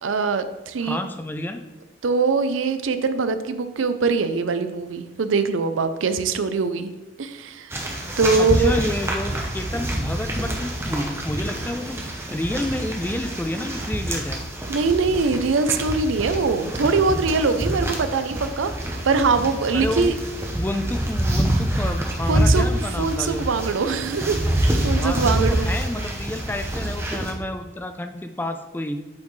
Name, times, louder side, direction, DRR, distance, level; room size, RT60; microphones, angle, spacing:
voice 1, 0.0-1.0 2.0-6.9 7.2-7.7 8.2-8.7 14.7-20.2 22.3-22.7 23.0-25.6, right 4 dB, 90° right, 10 dB, 0.5 m, -22 dB
voice 2, 0.8-1.6 8.4-12.0 12.3-14.4 19.7-23.5 25.0-29.0, left 1 dB, 10° left, 7 dB, 0.3 m, -30 dB
sound 1, 7.7-27.3, right 1 dB, 15° right, 0.8 m, -26 dB
8.4 x 4.4 x 3.1 m, 1.1 s
head